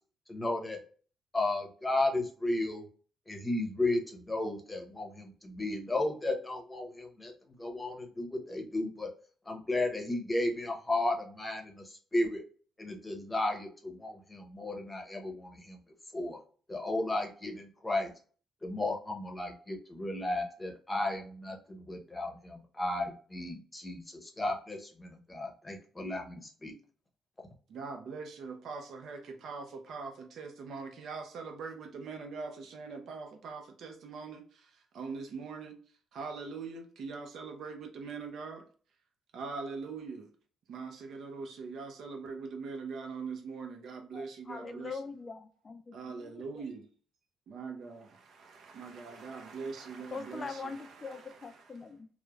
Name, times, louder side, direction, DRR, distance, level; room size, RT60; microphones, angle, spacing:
voice 1, 0.3-0.8 1.3-2.8 3.3-7.3 7.6-9.1 9.5-12.4 12.8-15.8 16.1-16.4 16.7-18.1 18.6-26.7, left 2 dB, 15° left, 1 dB, 0.7 m, -34 dB
voice 2, 27.7-35.8 36.1-38.6 39.3-40.3 40.7-45.0 45.9-46.8 47.5-51.8, right 4 dB, 70° right, 5 dB, 0.5 m, -42 dB
voice 3, 44.1-46.6 50.1-52.1, left 4 dB, 35° left, 8 dB, 0.3 m, -43 dB
3.1 x 2.0 x 2.3 m, 0.42 s
cardioid pair, 90°, 0 cm